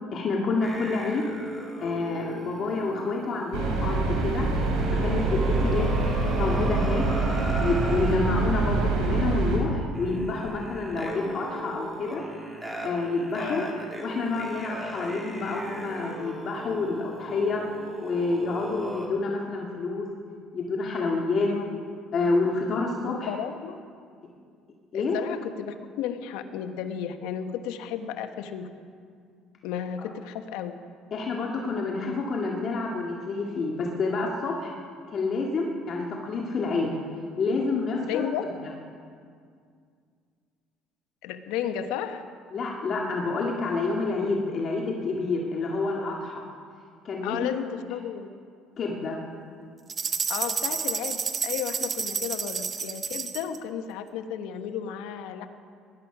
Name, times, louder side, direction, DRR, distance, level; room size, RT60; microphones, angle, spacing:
voice 1, 0.1-1.3 1.8-4.5 5.0-7.1 7.6-12.2 12.8-13.6 14.0-17.6 18.0-20.1 20.5-21.5 22.1-23.3 24.9-25.2 31.1-34.7 35.1-37.0 37.4-38.3 42.5-46.4 47.0-47.5 48.8-49.2, left 3 dB, 45° left, -1 dB, 1.9 m, -28 dB
sound 1, 0.6-8.2 9.0-9.3 9.9-19.1, right 1 dB, 5° right, 2.7 m, -37 dB
sound 2, 3.5-9.6, right 3 dB, 85° right, 3.6 m, -25 dB
voice 2, 5.6-6.0 13.4-13.7 21.4-21.8 23.1-23.8 24.9-28.7 29.6-30.8 38.0-38.5 41.2-42.2 47.2-48.3 50.3-55.5, left 9 dB, 85° left, 8 dB, 1.1 m, -33 dB
sound 3, 49.9-53.6, right 5 dB, 30° right, 0.8 m, -30 dB
20.0 x 11.5 x 5.9 m, 2.2 s
cardioid pair, 120°, 0 cm